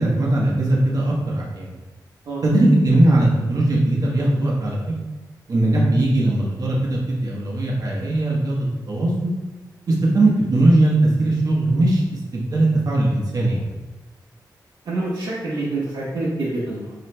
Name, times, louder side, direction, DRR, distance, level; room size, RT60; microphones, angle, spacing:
voice 1, 0.0-1.8 2.4-4.8 5.5-9.3 9.9-12.0 12.3-13.6, right 1 dB, 55° right, -4 dB, 1.1 m, -19 dB
voice 2, 14.8-16.9, right 2 dB, 80° right, -9 dB, 1.1 m, -26 dB
5.9 x 3.9 x 2.2 m, 1.2 s
wide cardioid pair, 120°, 7 cm